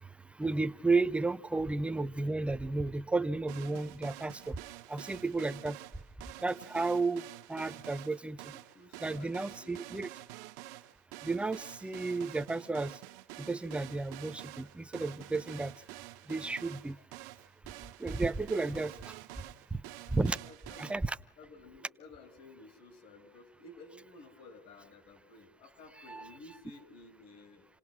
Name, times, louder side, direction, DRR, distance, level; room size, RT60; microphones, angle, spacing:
voice 1, 0.4-4.6 4.9-5.8 6.4-8.5 9.0-10.1 11.2-13.0 13.4-15.7 16.3-17.0 18.0-19.1 19.7-19.8 20.1-20.4 20.8-21.2 26.0-26.4, right 3 dB, 10° right, 15 dB, 0.8 m, -33 dB
sound 1, 3.5-20.9, right 17 dB, 85° right, 1.0 m, -48 dB
voice 2, 8.5-10.1 20.4-21.0 21.4-27.7, left 2 dB, 65° left, 10 dB, 5.8 m, -54 dB
28.5 x 18.0 x 6.2 m, 0.73 s
supercardioid pair, 100°, 10 cm